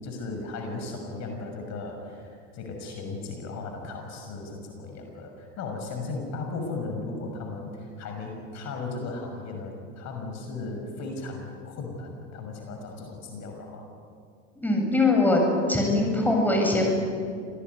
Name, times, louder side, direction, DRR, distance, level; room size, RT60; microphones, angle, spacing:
voice 1, 0.0-13.8, left 3 dB, 45° left, 3 dB, 6.2 m, -36 dB
voice 2, 14.6-15.4 15.7-16.8, left 2 dB, 5° left, 1 dB, 7.8 m, -22 dB
27.0 x 19.0 x 9.5 m, 2.2 s
hypercardioid pair, 95°, 36 cm